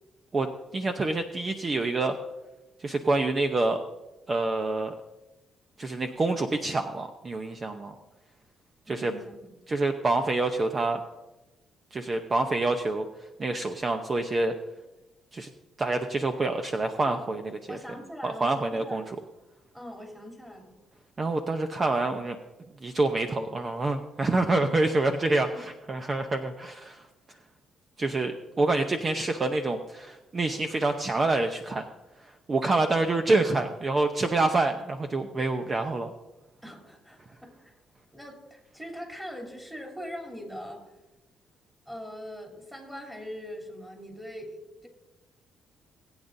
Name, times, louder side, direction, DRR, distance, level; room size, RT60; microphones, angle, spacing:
voice 1, 0.7-2.2 2.8-3.8 4.3-4.9 5.8-7.9 8.9-9.1 9.7-11.0 11.9-13.1 13.4-14.5 15.3-15.5 15.8-17.4 17.7-17.8 18.2-19.0 21.2-22.4 22.8-27.1 28.0-31.8 32.5-36.1, right 2 dB, 35° right, 6 dB, 0.7 m, -27 dB
voice 2, 8.9-9.5 17.0-17.2 17.7-19.2 19.7-20.7 25.5-25.6 36.6-37.7 38.1-40.8 41.9-44.6 44.8-44.9, equal, 5° right, 0 dB, 3.1 m, -41 dB
20.0 x 8.8 x 2.7 m, 1.0 s
cardioid pair, 90°, 0 cm